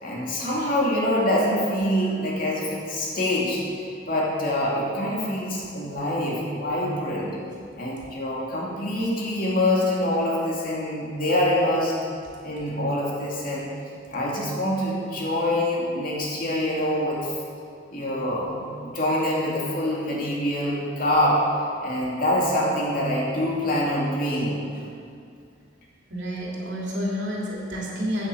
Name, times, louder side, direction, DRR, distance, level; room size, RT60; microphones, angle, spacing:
voice 1, 0.0-3.6 4.1-7.4 7.8-12.0 12.4-13.7 14.1-17.3 17.9-21.4 21.8-24.6, left 1 dB, 45° left, -4 dB, 2.6 m, -25 dB
voice 2, 26.1-28.3, equal, 65° right, -4 dB, 2.9 m, -29 dB
9.1 x 9.0 x 7.7 m, 2.3 s
head